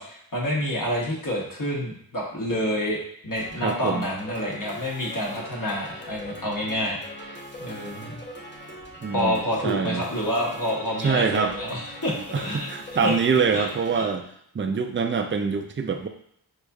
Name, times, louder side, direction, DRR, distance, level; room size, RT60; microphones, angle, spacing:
voice 1, 0.0-3.0 3.2-8.2 9.1-12.7 13.0-13.2 13.5-13.7 14.0-14.1, left 1 dB, 50° left, -3 dB, 1.0 m, -28 dB
sound 1, 3.4-14.0, equal, 25° left, 0.7 m, -41 dB
voice 2, 3.6-4.1 9.0-10.1 11.0-11.5 12.3-14.2 14.5-16.1, right 5 dB, 30° right, 6 dB, 0.4 m, -25 dB
4.7 x 2.6 x 2.3 m, 0.70 s
wide cardioid pair, 50°, 41 cm